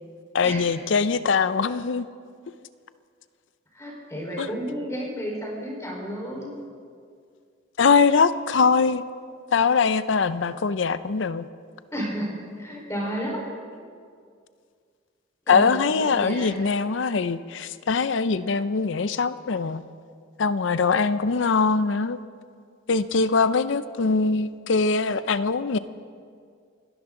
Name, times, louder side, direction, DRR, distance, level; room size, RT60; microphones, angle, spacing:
voice 1, 0.3-2.1 4.4-4.5 7.8-9.0 9.5-11.5 15.5-19.8 20.4-22.2 22.9-25.8, left 5 dB, 70° left, 14 dB, 0.5 m, -22 dB
voice 2, 3.7-6.6 11.9-12.3 12.6-13.4 15.5-16.5, equal, 15° left, -3 dB, 4.4 m, -32 dB
29.0 x 12.0 x 3.8 m, 2.2 s
head